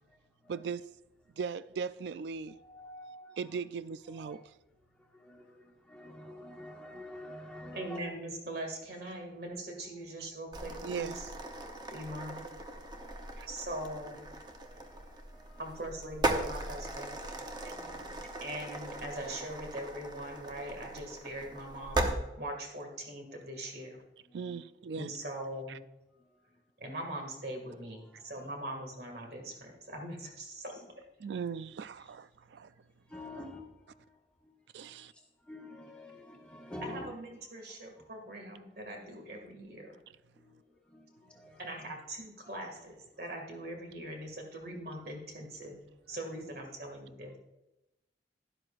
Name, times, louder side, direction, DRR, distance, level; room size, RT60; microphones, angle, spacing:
voice 1, 0.5-0.9 1.4-2.6 3.4-4.5 10.2-10.3 10.8-11.2 13.4-13.5 17.6-17.7 24.3-25.1 25.7-25.8 31.2-32.7 34.7-35.1, right 6 dB, 75° right, 0.4 m, -38 dB
voice 2, 2.5-3.6 4.1-4.4 5.1-8.0 12.9-13.8 14.5-16.0 17.1-18.7 24.3-24.6 27.8-28.5 30.7-30.8 33.1-34.1 34.9-35.0 35.5-37.2 40.4-40.5 40.9-41.8 42.5-42.6 43.2-43.3, left 1 dB, 5° left, 1.5 m, -49 dB
voice 3, 7.7-11.3 11.9-12.4 13.5-14.3 15.6-17.2 18.4-24.0 24.9-25.8 26.8-30.9 33.4-33.5 36.8-40.0 41.6-45.8 46.1-47.4, right 1 dB, 60° right, 2.2 m, -41 dB
sound 1, 10.5-22.1, right 2 dB, 25° right, 0.8 m, -38 dB
12.0 x 11.0 x 2.5 m
head